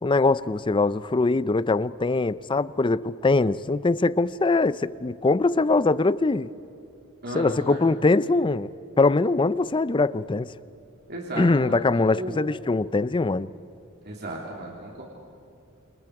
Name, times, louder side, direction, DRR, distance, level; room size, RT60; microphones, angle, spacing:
voice 1, 0.0-6.5 7.3-8.7 9.0-10.5 11.4-13.5, left 3 dB, 25° left, 18 dB, 0.5 m, -22 dB
voice 2, 7.2-7.9 11.1-11.8 12.1-12.4 14.0-15.0, right 1 dB, 50° right, -2 dB, 3.2 m, -35 dB
29.0 x 28.0 x 4.8 m, 2.9 s
head